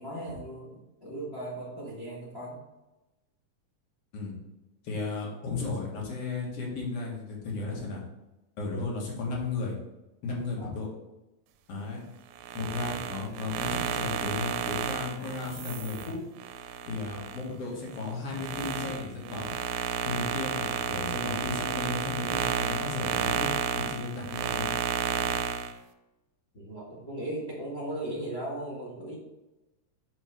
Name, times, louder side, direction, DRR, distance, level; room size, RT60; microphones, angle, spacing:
voice 1, 0.0-2.6 10.6-10.9 26.5-29.1, right 1 dB, 35° left, -5 dB, 0.9 m, -37 dB
voice 2, 4.8-8.0 8.6-9.7 10.2-10.9 11.7-12.0 12.5-16.2 16.9-19.5 20.0-24.7, left 3 dB, 55° left, -2 dB, 2.5 m, -34 dB
sound 1, 12.3-17.4 17.9-25.7, right 8 dB, 80° right, 2.0 m, -32 dB
6.5 x 6.1 x 3.7 m, 1.0 s
omnidirectional pair, 3.6 m